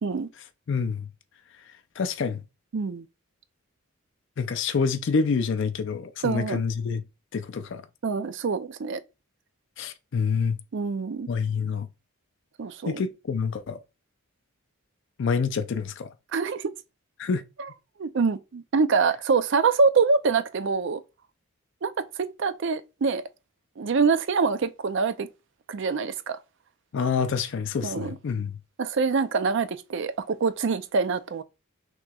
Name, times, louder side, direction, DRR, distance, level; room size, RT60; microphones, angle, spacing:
voice 1, 0.7-1.1 2.0-2.4 4.4-7.0 7.3-7.9 9.8-10.6 11.3-11.9 12.9-13.8 15.2-16.1 17.2-17.4 26.9-28.6, left 5 dB, 60° left, 0.4 m, -27 dB
voice 2, 2.7-3.1 6.2-6.6 8.0-9.0 10.7-11.3 12.6-13.0 16.3-16.7 18.0-21.0 21.8-23.2 23.8-25.3 25.7-26.4 27.8-28.2 28.8-31.4, right 4 dB, 55° right, 0.4 m, -25 dB
6.0 x 3.0 x 2.3 m
head